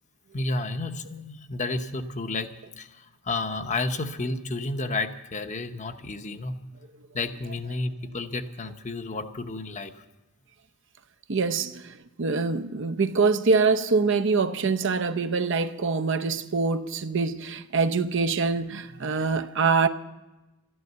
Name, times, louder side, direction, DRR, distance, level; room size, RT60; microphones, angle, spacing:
voice 1, 0.3-2.9 3.3-6.6 7.1-9.9, left 2 dB, 35° left, 0.8 m, -31 dB
voice 2, 11.3-11.9 12.2-19.9, right 4 dB, 60° right, 0.7 m, -24 dB
13.0 x 11.0 x 8.0 m
head